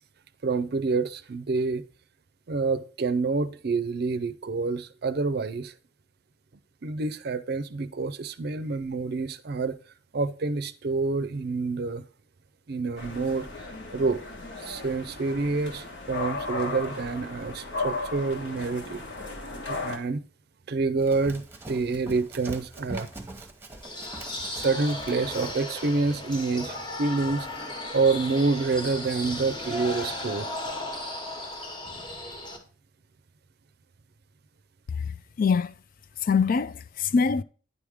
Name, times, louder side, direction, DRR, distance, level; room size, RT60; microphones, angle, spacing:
voice 1, 0.4-1.8 2.5-5.7 6.8-9.8 10.1-12.0 12.7-13.5 13.9-14.2 14.6-19.0 19.7-20.2 20.7-23.1 24.5-27.5 27.9-30.5, right 3 dB, 60° right, 0.5 m, -27 dB
sound 1, 13.0-20.0, left 3 dB, 70° left, 1.3 m, -35 dB
Run, 21.0-25.7, right 2 dB, 15° right, 0.9 m, -42 dB
sound 2, 23.8-32.6, left 1 dB, 25° left, 1.2 m, -36 dB
voice 2, 35.4-35.7 36.2-37.4, left 5 dB, 50° left, 0.3 m, -23 dB
9.7 x 3.6 x 4.9 m
head